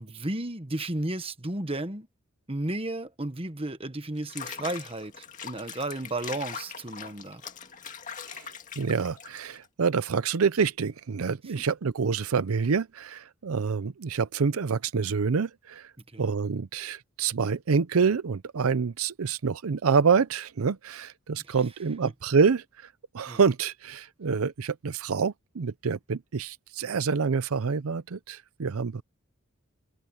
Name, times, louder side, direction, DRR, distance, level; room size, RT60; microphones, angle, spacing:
voice 1, 0.0-2.1 2.5-7.4 11.6-11.7 16.1-16.3 21.5-21.6 22.0-22.1 23.3-23.4, right 1 dB, 25° right, 1.4 m, -33 dB
Water / Bathtub (filling or washing), 4.2-9.7, left 7 dB, 35° left, 2.0 m, -41 dB
voice 2, 8.8-15.9 16.2-22.6 23.1-29.0, right 5 dB, 90° right, 0.6 m, -27 dB
head